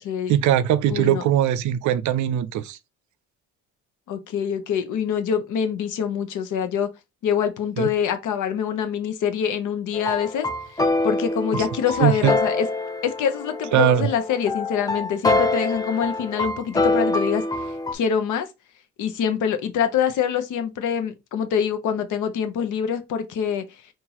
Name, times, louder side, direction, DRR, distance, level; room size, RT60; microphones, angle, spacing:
voice 1, 0.3-2.8 7.8-7.9 11.5-11.6 12.0-12.3 13.7-14.1, right 11 dB, 75° right, 0.5 m, -20 dB
voice 2, 0.9-1.2 4.1-6.9 7.2-10.5 11.0-12.7 13.0-17.4 17.9-18.5 19.0-23.6, left 7 dB, 80° left, 0.8 m, -25 dB
sound 1, 9.9-17.9, left 2 dB, 15° left, 0.4 m, -25 dB
3.9 x 2.5 x 2.9 m
cardioid pair, 90°, 30 cm